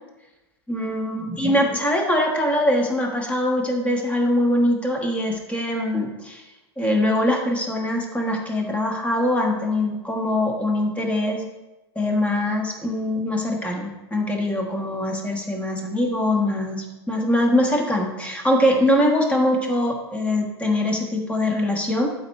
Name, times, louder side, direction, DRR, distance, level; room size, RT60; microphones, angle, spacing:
voice 1, 0.7-6.4 6.8-11.4 11.9-22.1, left 1 dB, 10° left, 1 dB, 1.4 m, -22 dB
12.0 x 4.5 x 3.2 m, 1.0 s
figure-of-eight pair, 95°, 14 cm